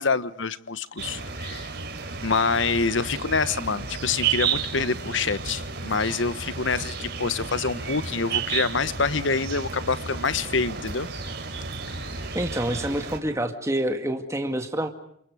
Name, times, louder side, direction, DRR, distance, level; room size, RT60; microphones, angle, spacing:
voice 1, 0.0-1.7 2.2-11.1 12.2-12.3, left 4 dB, 70° left, 15 dB, 1.1 m, -26 dB
sound 1, 1.0-13.2, right 5 dB, 55° right, 4.3 m, -32 dB
voice 2, 12.3-14.9, right 1 dB, 15° right, 5 dB, 2.1 m, -27 dB
29.5 x 27.5 x 4.9 m, 0.70 s
head